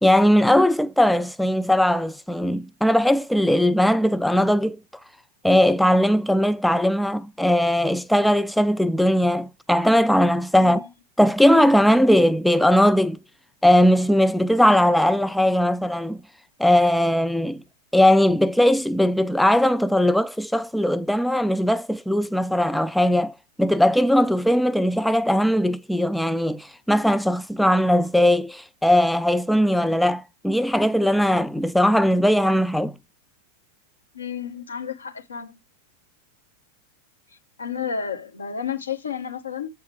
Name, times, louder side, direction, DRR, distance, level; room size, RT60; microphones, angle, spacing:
voice 1, 0.0-4.8 5.4-10.9 11.2-13.2 13.6-16.2 16.6-17.6 17.9-23.3 23.6-32.9, equal, ahead, 0.3 m, -19 dB
voice 2, 34.1-35.6 37.6-39.7, left 7 dB, 75° left, 1.5 m, -31 dB
8.6 x 3.6 x 4.6 m
figure-of-eight pair, 90°, 0 cm